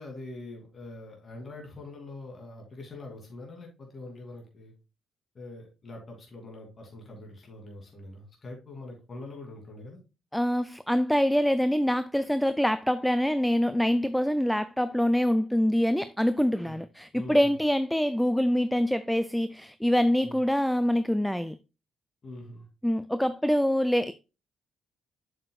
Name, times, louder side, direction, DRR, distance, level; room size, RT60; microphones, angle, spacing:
voice 1, 0.0-4.7 5.3-10.0 16.6-16.8 17.1-17.5 20.2-20.4 22.2-22.7, left 2 dB, 40° left, 2.8 m, -44 dB
voice 2, 10.3-21.6 22.8-24.1, equal, 5° left, 0.4 m, -25 dB
7.5 x 6.6 x 2.3 m
cardioid pair, 90°, 0 cm